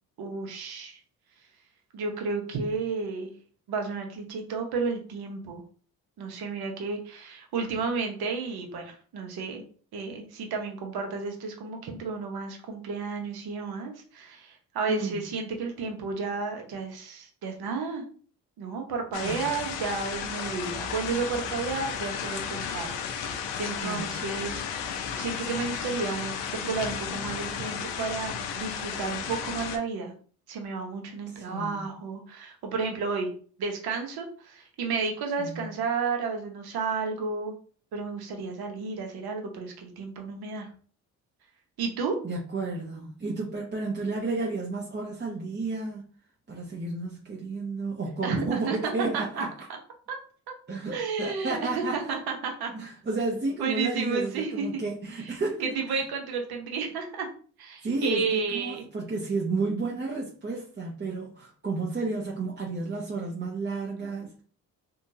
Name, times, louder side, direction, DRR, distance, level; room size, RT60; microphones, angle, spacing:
voice 1, 0.2-1.0 1.9-3.3 3.7-5.6 6.2-9.6 9.9-18.0 18.6-24.6 25.2-30.1 30.5-33.3 33.6-37.5 37.9-40.7 41.8-42.2 48.2-49.8 50.1-50.2 50.5-50.6 50.9-52.7 53.6-54.7 55.2-57.3 57.6-58.8, right 4 dB, 55° right, 3 dB, 0.9 m, -32 dB
voice 2, 14.9-15.2 19.2-19.4 23.8-24.1 31.3-31.9 35.4-35.7 42.2-46.0 46.5-49.5 50.7-52.0 52.7-55.7 57.8-64.4, right 3 dB, 25° right, -2 dB, 0.7 m, -32 dB
sound 1, 19.1-29.8, left 7 dB, 70° left, 0.6 m, -34 dB
2.8 x 2.3 x 2.7 m, 0.43 s
hypercardioid pair, 45°, 44 cm